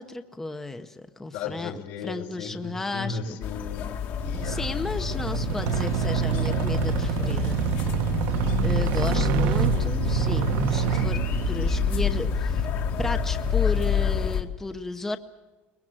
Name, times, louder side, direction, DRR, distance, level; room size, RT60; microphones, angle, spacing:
voice 1, 0.0-3.4 4.4-7.6 8.6-12.7 13.0-15.2, left 2 dB, 10° left, 8 dB, 0.8 m, -34 dB
voice 2, 1.3-6.7, left 5 dB, 80° left, 2 dB, 4.5 m, -38 dB
sound 1, 3.4-14.4, left 8 dB, 50° left, 1.9 m, -28 dB
sound 2, 4.2-14.2, right 9 dB, 70° right, 1.2 m, -27 dB
22.0 x 21.5 x 7.6 m, 1.2 s
cardioid pair, 160°, 4 cm